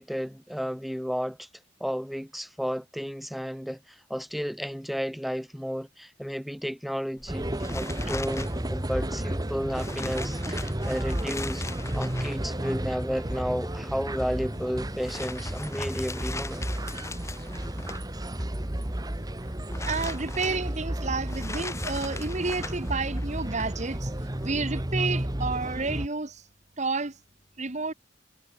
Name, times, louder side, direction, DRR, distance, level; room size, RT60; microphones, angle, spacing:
voice 1, 0.0-1.5 1.8-11.6 11.9-16.7, equal, ahead, 2.7 m, -32 dB
sound 1, 7.2-24.4, left 3 dB, 15° left, 1.4 m, -42 dB
sound 2, 7.3-26.1, right 1 dB, 20° right, 1.3 m, -32 dB
voice 2, 19.9-24.1 24.4-26.4 26.8-27.2 27.6-27.9, right 3 dB, 40° right, 1.4 m, -30 dB
head